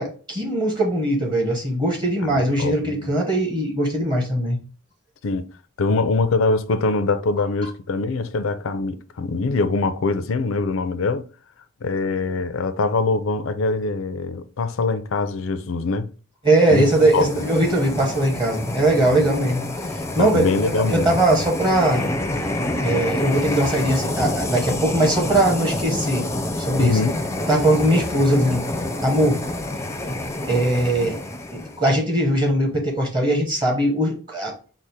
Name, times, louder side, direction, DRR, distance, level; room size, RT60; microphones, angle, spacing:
voice 1, 0.0-4.6 16.4-20.5 20.9-22.0 22.8-26.3 26.5-27.0 27.5-28.6 29.0-29.4 30.5-31.2 31.5-34.5, right 1 dB, 20° right, 1.0 m, -20 dB
voice 2, 2.3-3.1 5.2-5.5 5.8-11.2 11.8-16.1 16.7-16.8 17.1-17.3 20.2-21.2 26.8-27.2, left 3 dB, 70° left, 0.5 m, -23 dB
sound 1, 16.5-31.9, left 1 dB, 15° left, 0.5 m, -28 dB
4.9 x 2.1 x 4.2 m
head